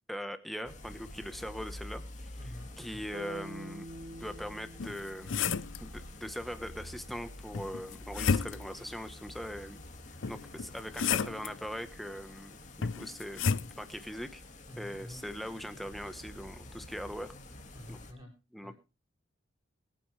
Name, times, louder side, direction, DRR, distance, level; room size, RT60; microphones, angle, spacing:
voice 1, 0.1-2.3 2.8-3.9 4.2-9.8 10.3-14.4 14.8-17.3 17.9-18.0 18.5-18.7, equal, ahead, 9 dB, 1.1 m, -41 dB
sound 1, 0.6-18.1, left 1 dB, 40° left, 2.1 m, -48 dB
voice 2, 2.4-3.0 10.2-10.6 14.7-15.2 17.7-18.3 18.6-18.7, left 1 dB, 25° right, -6 dB, 6.5 m, -49 dB
sound 2, 3.1-7.2, right 1 dB, 40° right, 0.8 m, -48 dB
sound 3, 4.8-5.8 7.5-8.8 10.2-11.5 12.8-13.7, left 6 dB, 75° left, 0.6 m, -31 dB
23.5 x 9.2 x 3.3 m, 0.29 s
head